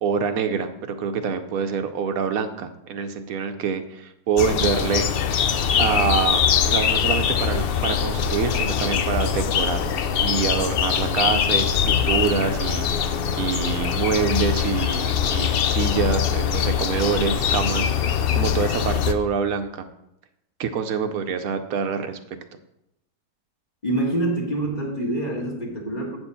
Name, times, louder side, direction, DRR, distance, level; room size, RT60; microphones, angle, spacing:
voice 1, 0.0-5.1 5.8-9.9 10.2-19.9 20.6-22.2, right 6 dB, 75° right, 8 dB, 1.1 m, -26 dB
sound 1, 4.4-19.1, left 8 dB, 65° left, 0.6 m, -22 dB
voice 2, 23.8-26.2, right 1 dB, 30° left, -1 dB, 1.7 m, -26 dB
8.8 x 4.4 x 6.8 m, 0.84 s
omnidirectional pair, 1.6 m